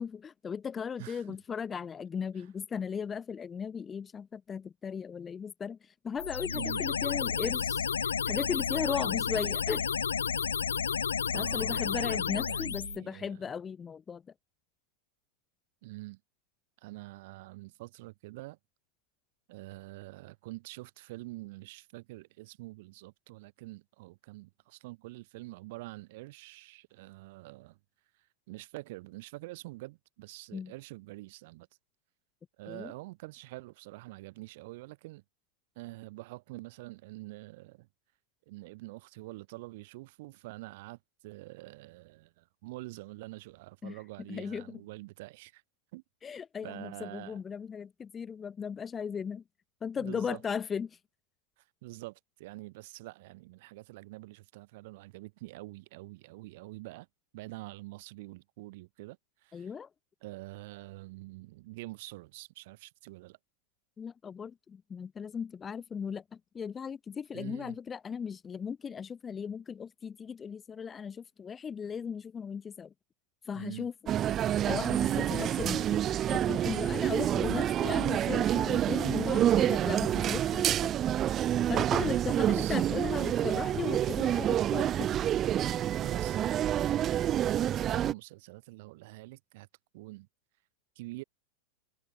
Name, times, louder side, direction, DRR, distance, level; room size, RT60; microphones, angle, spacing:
voice 1, 0.0-9.9 11.3-14.2 30.5-30.7 32.7-32.9 43.8-44.0 44.3-44.8 46.2-49.4 49.8-51.0 59.5-59.9 64.0-72.9 73.5-73.9 74.6-76.0 76.3-80.9 81.7-85.1, left 6 dB, 20° left, 0.8 m, -37 dB
voice 2, 1.0-1.4 2.4-2.5 6.5-6.8 11.3-12.0 12.5-13.5 15.8-16.2 16.8-18.6 19.5-27.8 28.5-31.7 32.6-35.2 35.7-37.9 38.5-45.6 45.9-46.0 46.6-47.4 49.9-50.4 51.6-57.1 57.3-59.7 60.2-63.4 67.3-67.8 73.5-73.9 75.1-75.5 81.9-82.8 85.9-89.7 89.9-90.3 91.0-91.2, right 21 dB, 50° right, 4.6 m, -46 dB
sound 1, 6.2-13.0, left 7 dB, 70° left, 0.3 m, -31 dB
sound 2, 74.1-88.1, right 11 dB, 30° right, 0.4 m, -28 dB
figure-of-eight pair, 90°, 0 cm